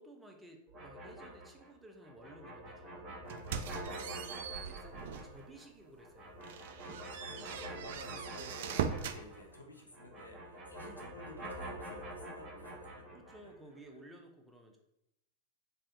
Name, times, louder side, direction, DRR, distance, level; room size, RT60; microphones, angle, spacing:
voice 1, 0.0-3.4 4.6-6.4 7.5-8.1 13.1-14.8, right 1 dB, 10° right, 2 dB, 0.6 m, -55 dB
sound 1, 0.7-9.6 9.9-13.5, right 1 dB, 25° right, 1.1 m, -47 dB
sound 2, 3.3-5.4 5.8-6.0 6.4-9.2, right 7 dB, 55° right, 0.3 m, -40 dB
voice 2, 3.8-4.2 7.2-13.0 13.4-13.5, left 1 dB, 85° left, 0 dB, 0.7 m, -53 dB
3.4 x 2.6 x 3.9 m, 0.85 s
figure-of-eight pair, 90°, 0 cm